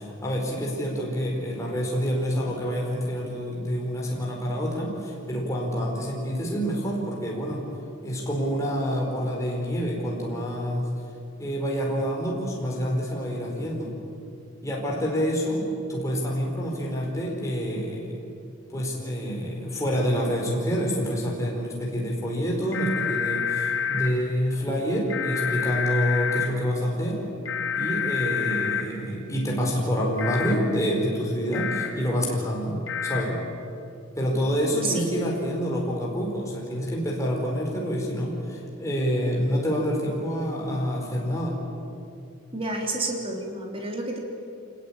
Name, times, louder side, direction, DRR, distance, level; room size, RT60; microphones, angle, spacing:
voice 1, 0.0-7.7 8.0-10.9 11.4-13.9 14.6-18.1 18.7-27.2 27.7-33.4 34.1-41.6, equal, 15° left, -2 dB, 4.6 m, -27 dB
sound 1, 22.7-24.1 25.1-26.5 27.5-28.8 30.2-30.5 31.5-31.9 32.9-33.2, left 7 dB, 70° left, 3.1 m, -27 dB
voice 2, 34.7-35.1 42.5-44.2, right 2 dB, 25° right, 1 dB, 3.4 m, -30 dB
26.0 x 20.0 x 8.9 m, 2.5 s
head